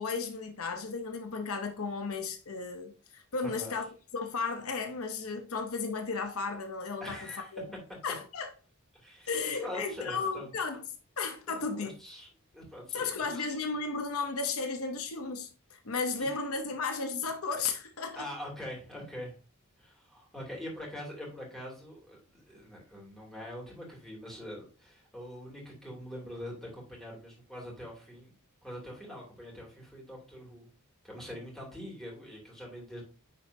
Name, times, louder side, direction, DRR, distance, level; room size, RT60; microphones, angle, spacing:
voice 1, 0.0-3.9 4.1-7.7 8.0-8.5 9.3-10.8 11.2-11.9 12.9-18.3, left 4 dB, 75° left, 0.9 m, -34 dB
voice 2, 3.4-3.7 7.0-7.5 8.9-9.3 9.6-10.5 11.5-12.3 12.5-13.6 16.2-16.3 18.2-19.4 19.8-28.3 28.6-30.7 31.0-33.0, equal, ahead, 2.9 m, -43 dB
9.6 x 4.2 x 2.7 m
head